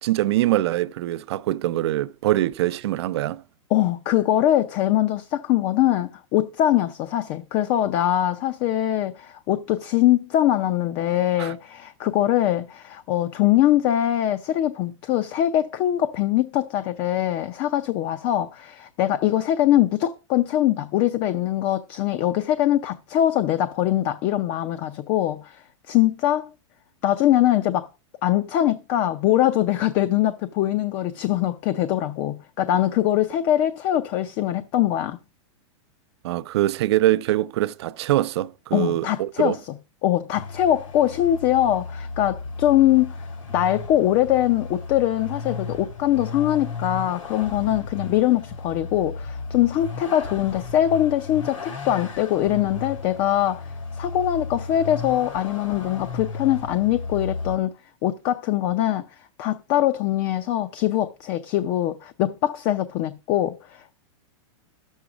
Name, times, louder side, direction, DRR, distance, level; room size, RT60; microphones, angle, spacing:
voice 1, 0.0-3.4 11.4-11.5 36.2-39.6, right 14 dB, 55° right, 0.6 m, -23 dB
voice 2, 3.7-25.6 25.9-26.5 27.0-27.9 28.2-35.2 38.7-39.7 40.0-43.2 43.5-57.7 58.0-59.0 59.4-64.0, left 12 dB, 30° left, 0.5 m, -22 dB
Vehicle, 40.3-57.6, left 4 dB, 85° left, 3.0 m, -34 dB
11.5 x 7.2 x 5.0 m
supercardioid pair, 160°, 16 cm